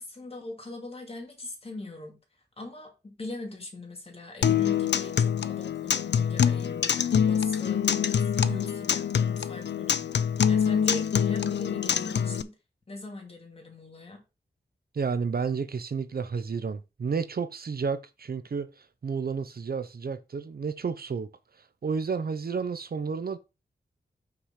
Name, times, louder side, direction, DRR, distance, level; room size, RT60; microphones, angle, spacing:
voice 1, 0.0-2.2 2.6-7.9 8.2-10.2 10.5-12.5 12.9-14.2, left 2 dB, 35° left, 2.7 m, -40 dB
Acoustic guitar, 4.4-12.4, left 8 dB, 85° left, 0.5 m, -25 dB
voice 2, 14.9-21.3 21.8-23.4, right 5 dB, 60° right, 0.7 m, -31 dB
6.0 x 5.0 x 5.7 m
wide cardioid pair, 120°, 18 cm